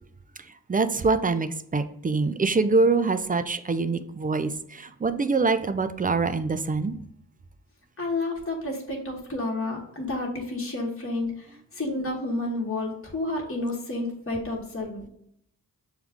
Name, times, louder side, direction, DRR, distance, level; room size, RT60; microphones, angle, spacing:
voice 1, 0.7-7.0, right 3 dB, 20° right, 10 dB, 0.4 m, -24 dB
voice 2, 8.0-15.1, left 2 dB, 30° left, -1 dB, 1.2 m, -30 dB
6.3 x 2.3 x 3.5 m, 0.71 s
cardioid pair, 40°, 41 cm